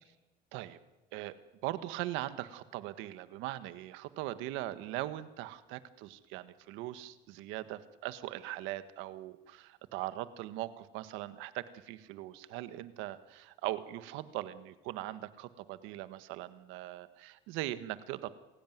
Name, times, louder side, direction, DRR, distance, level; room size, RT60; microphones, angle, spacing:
voice 1, 1.6-18.3, right 15 dB, 80° right, 12 dB, 1.5 m, -40 dB
27.5 x 17.0 x 9.4 m, 1.1 s
cardioid pair, 125°, 20 cm